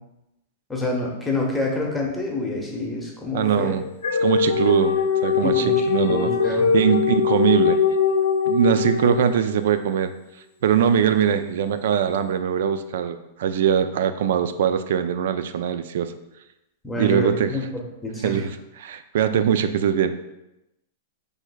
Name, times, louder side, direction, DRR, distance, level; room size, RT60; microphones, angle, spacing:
voice 1, 0.7-3.7 5.4-6.7 16.8-18.4, left 2 dB, 10° left, -1 dB, 0.9 m, -27 dB
voice 2, 3.3-3.9 4.2-6.3 6.7-7.8 8.5-10.1 10.6-16.1 17.0-17.5 18.2-18.5 18.8-20.1, right 8 dB, 70° right, 10 dB, 0.3 m, -21 dB
sound 1, 3.4-9.7, left 6 dB, 80° left, 0.6 m, -22 dB
6.2 x 3.3 x 2.2 m, 0.91 s
hypercardioid pair, 125°, 0 cm